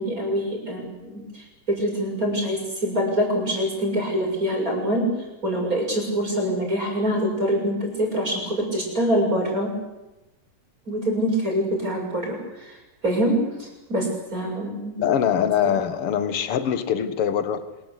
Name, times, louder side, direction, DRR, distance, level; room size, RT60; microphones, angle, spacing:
voice 1, 0.0-5.1 5.4-9.7 10.9-12.8 13.0-13.3 13.6-15.0, equal, 25° right, 0 dB, 7.3 m, -25 dB
voice 2, 15.0-17.6, left 9 dB, 50° left, 11 dB, 2.2 m, -23 dB
26.5 x 21.0 x 8.5 m, 1.0 s
omnidirectional pair, 3.9 m